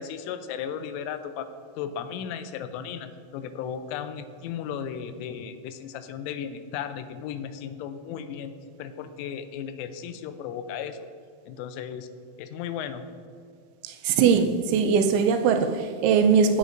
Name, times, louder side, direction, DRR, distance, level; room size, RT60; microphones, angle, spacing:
voice 1, 0.0-1.5 1.8-8.5 8.8-11.0 11.5-12.1 12.4-13.0, left 8 dB, 85° left, 10 dB, 3.0 m, -35 dB
voice 2, 13.8-16.6, right 6 dB, 80° right, 6 dB, 2.8 m, -21 dB
16.5 x 8.3 x 2.6 m, 2.3 s
omnidirectional pair, 5.8 m